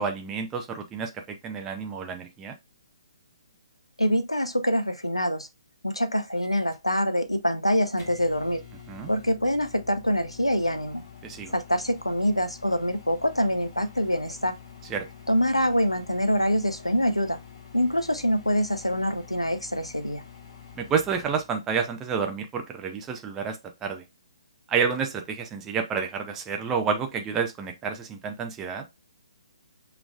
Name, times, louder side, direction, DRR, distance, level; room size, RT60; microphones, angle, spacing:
voice 1, 0.0-2.5 8.9-9.1 11.2-11.5 14.9-15.0 20.8-24.0 24.7-28.8, right 6 dB, 15° right, 0.7 m, -29 dB
voice 2, 4.0-5.5 5.8-8.6 9.1-11.0 11.5-14.5 15.3-17.4 17.7-20.2, equal, 90° left, 0.8 m, -25 dB
Microwave oven, 6.4-21.5, left 7 dB, 40° left, 2.4 m, -47 dB
6.0 x 3.5 x 2.4 m
figure-of-eight pair, 135°, 3 cm